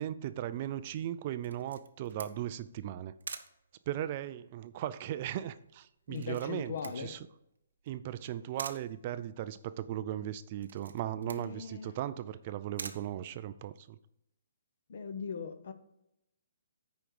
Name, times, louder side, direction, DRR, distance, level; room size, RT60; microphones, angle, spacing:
voice 1, 0.0-3.1 3.9-7.2 7.9-14.0, right 11 dB, 25° right, 13 dB, 0.3 m, -37 dB
Camera, 1.4-13.9, right 5 dB, 90° right, 0.9 m, -49 dB
voice 2, 6.1-7.1 11.3-11.9 14.9-15.7, left 6 dB, 50° left, 10 dB, 0.8 m, -39 dB
8.5 x 5.1 x 4.7 m, 0.80 s
hypercardioid pair, 175°, 0 cm